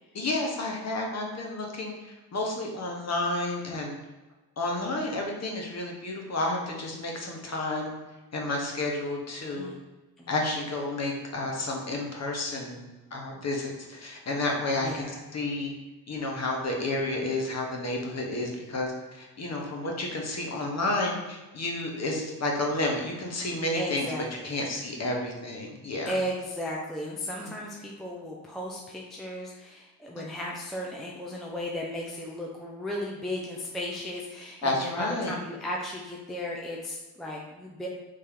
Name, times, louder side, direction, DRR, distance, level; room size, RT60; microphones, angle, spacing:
voice 1, 0.1-1.9 2.3-4.0 4.6-7.9 8.3-9.7 10.3-12.8 13.1-15.1 15.3-15.7 16.1-24.1 24.4-26.1 27.4-27.5 30.2-30.3 34.6-35.3, left 2 dB, 35° left, 0 dB, 1.0 m, -31 dB
voice 2, 14.8-15.2 23.7-24.7 26.1-37.9, left 1 dB, ahead, -2 dB, 0.6 m, -35 dB
3.2 x 2.8 x 3.7 m, 1.1 s
hypercardioid pair, 60°, 48 cm